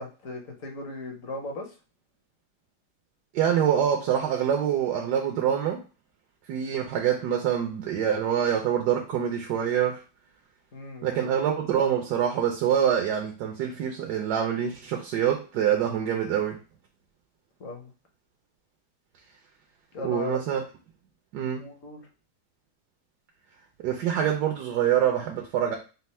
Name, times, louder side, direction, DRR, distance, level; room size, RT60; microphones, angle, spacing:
voice 1, 0.0-1.7 10.7-11.2 17.6-17.9 19.9-20.4 21.6-22.0, left 2 dB, 55° left, 2 dB, 1.2 m, -37 dB
voice 2, 3.3-5.8 6.5-10.0 11.0-16.6 20.0-20.6 21.3-21.6 23.8-25.8, right 9 dB, 85° right, 2 dB, 1.2 m, -25 dB
4.3 x 2.1 x 4.1 m, 0.33 s
omnidirectional pair, 1.7 m